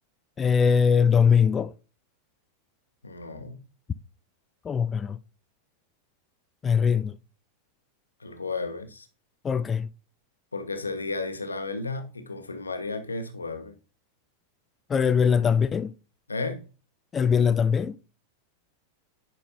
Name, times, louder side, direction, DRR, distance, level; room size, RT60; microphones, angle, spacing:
voice 1, 0.4-1.7 4.6-5.2 6.6-7.2 9.4-9.9 14.9-15.9 17.1-18.0, left 6 dB, 20° left, 0.3 m, -21 dB
voice 2, 3.0-3.6 8.2-9.1 10.5-13.7 16.3-16.6, left 3 dB, 80° left, 1.1 m, -33 dB
10.0 x 5.4 x 2.9 m
figure-of-eight pair, 90°, 0 cm